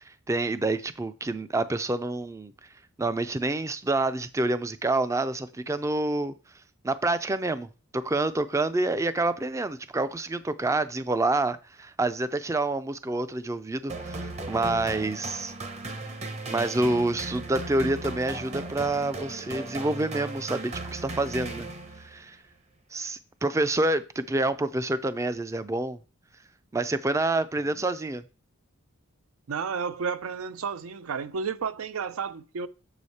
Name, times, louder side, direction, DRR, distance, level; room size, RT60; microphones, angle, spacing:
voice 1, 0.0-2.5 3.0-6.3 6.8-7.7 7.9-15.5 16.5-21.7 22.0-22.4 22.9-26.0 26.7-28.2, right 2 dB, 15° right, 0.3 m, -27 dB
sound 1, 13.9-22.2, right 2 dB, 30° right, 0.8 m, -37 dB
voice 2, 29.5-32.7, right 6 dB, 80° right, 0.5 m, -32 dB
7.0 x 4.9 x 4.2 m
head